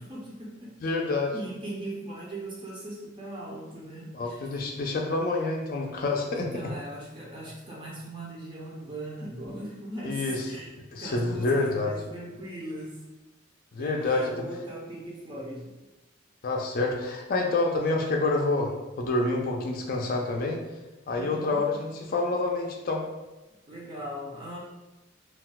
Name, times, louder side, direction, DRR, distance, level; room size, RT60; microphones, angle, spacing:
voice 1, 0.0-0.8 1.3-4.5 6.3-10.7 11.0-13.0 13.8-15.7 21.1-21.8 23.7-24.6, right 1 dB, 25° right, -4 dB, 0.5 m, -39 dB
voice 2, 0.8-1.3 4.1-6.5 10.1-10.5 10.9-11.9 13.7-14.4 16.4-20.6 21.1-23.0, left 2 dB, 45° left, 0 dB, 0.4 m, -27 dB
2.3 x 2.2 x 3.8 m, 1.1 s
head